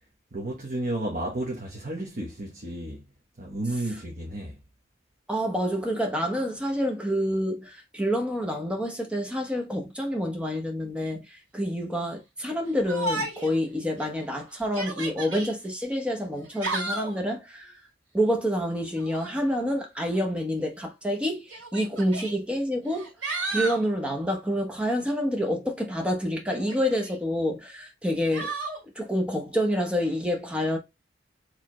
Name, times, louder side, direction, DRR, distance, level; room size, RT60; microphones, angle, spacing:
voice 1, 0.3-3.0 3.4-4.6, right 1 dB, 45° right, 1.1 m, -32 dB
voice 2, 5.3-11.2 11.5-17.7 18.1-23.1 23.5-28.5 29.0-30.8, equal, 5° right, 1.0 m, -28 dB
Yell, 12.9-13.6 14.0-14.1 14.6-15.5 16.4-17.2 18.9-19.4 20.5-20.6 21.5-22.3 22.9-23.8 26.5-27.2 28.3-28.8, right 2 dB, 80° right, 2.3 m, -32 dB
4.5 x 3.3 x 3.1 m
head